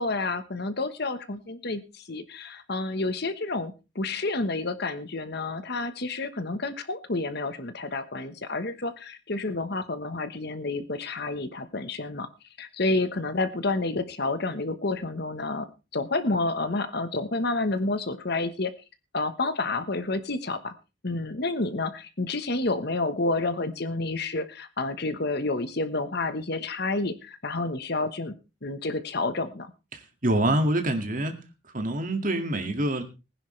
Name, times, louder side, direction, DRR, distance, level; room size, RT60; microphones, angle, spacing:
voice 1, 0.0-12.3 12.6-18.7 19.1-20.7 21.0-28.3 28.6-29.7, left 2 dB, 50° left, 11 dB, 1.2 m, -29 dB
voice 2, 29.9-31.4 31.7-33.0, right 1 dB, 40° right, 6 dB, 2.1 m, -26 dB
20.0 x 10.5 x 3.3 m, 0.29 s
head